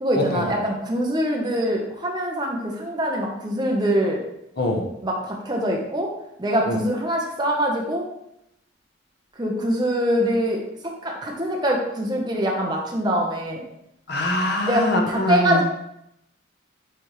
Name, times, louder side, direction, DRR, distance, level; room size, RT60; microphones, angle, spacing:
voice 1, 0.0-4.2 5.0-6.1 6.4-8.1 9.4-10.6 11.0-13.6 14.6-15.6, equal, 20° right, 0 dB, 0.9 m, -24 dB
voice 2, 14.1-15.6, left 1 dB, 50° left, 1 dB, 0.9 m, -23 dB
9.1 x 3.5 x 3.1 m, 0.81 s
head